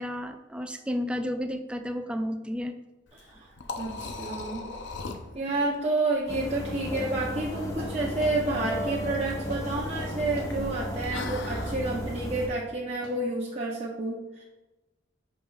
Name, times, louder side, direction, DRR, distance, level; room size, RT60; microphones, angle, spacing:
voice 1, 0.0-2.8, equal, 5° right, 6 dB, 0.3 m, -32 dB
Liquid, 3.1-11.8, left 3 dB, 65° left, 0.7 m, -41 dB
voice 2, 3.1-3.5 3.8-4.7 5.3-14.4, right 2 dB, 35° right, -5 dB, 0.7 m, -30 dB
sound 1, 6.3-12.5, equal, 20° left, 0.9 m, -34 dB
sound 2, 6.9-7.1 7.3-7.5 7.8-8.8 9.1-9.2 9.5-9.7 9.9-10.5 10.8-10.9 11.2-12.0 13.0-13.1, left 1 dB, 50° left, 2.0 m, -42 dB
8.1 x 5.3 x 2.4 m, 1.1 s
head